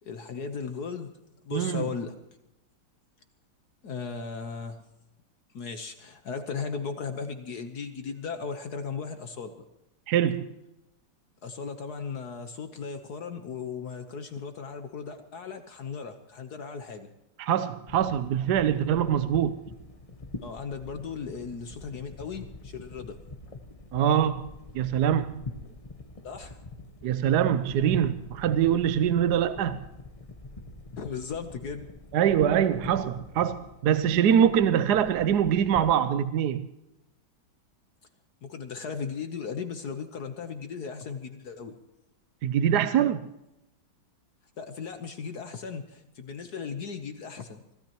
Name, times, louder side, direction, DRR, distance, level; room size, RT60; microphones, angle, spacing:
voice 1, 0.0-1.1 1.4-2.1 3.8-4.8 5.5-9.6 11.4-17.1 20.4-23.2 25.6-25.8 26.2-26.6 31.0-31.9 38.4-41.7 44.6-47.6, left 5 dB, 60° left, 1.5 m, -36 dB
voice 2, 1.5-1.9 10.1-10.5 17.4-19.6 23.9-24.5 24.7-25.4 27.0-29.8 32.1-36.7 42.4-43.3, right 9 dB, 70° right, 1.2 m, -24 dB
sound 1, 17.9-36.0, left 2 dB, 25° left, 1.0 m, -45 dB
25.0 x 16.5 x 3.0 m
omnidirectional pair, 2.0 m